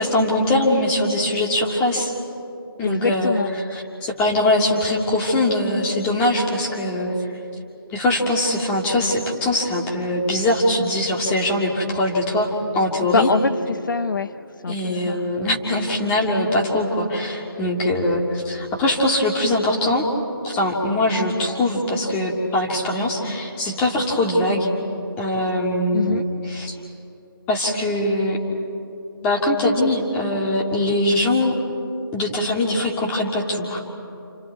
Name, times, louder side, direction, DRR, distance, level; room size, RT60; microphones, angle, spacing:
voice 1, 0.0-2.1 2.8-3.4 3.7-7.1 7.9-13.3 14.7-20.0 20.4-24.7 25.2-26.2 26.5-26.8 27.5-28.4 29.2-31.6 32.1-33.8, left 1 dB, 10° left, -2 dB, 2.3 m, -22 dB
voice 2, 2.8-3.5 13.0-14.3 14.6-15.2 25.9-26.3, left 4 dB, 60° left, 11 dB, 0.6 m, -24 dB
29.5 x 29.5 x 4.8 m, 2.8 s
figure-of-eight pair, 160°, 12 cm